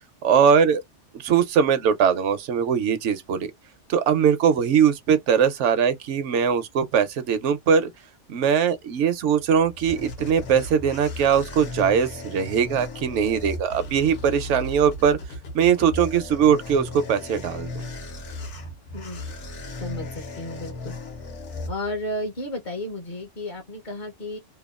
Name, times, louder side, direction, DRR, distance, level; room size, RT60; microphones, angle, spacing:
voice 1, 0.2-0.8 1.1-3.5 3.9-7.9 8.3-15.2 15.5-17.7, right 7 dB, 75° right, 0.9 m, -21 dB
sound 1, 9.4-22.3, left 1 dB, 75° left, 1.2 m, -36 dB
voice 2, 18.9-19.3 19.8-20.9 21.7-24.4, left 1 dB, 50° left, 0.7 m, -33 dB
2.8 x 2.2 x 2.3 m
omnidirectional pair, 1.2 m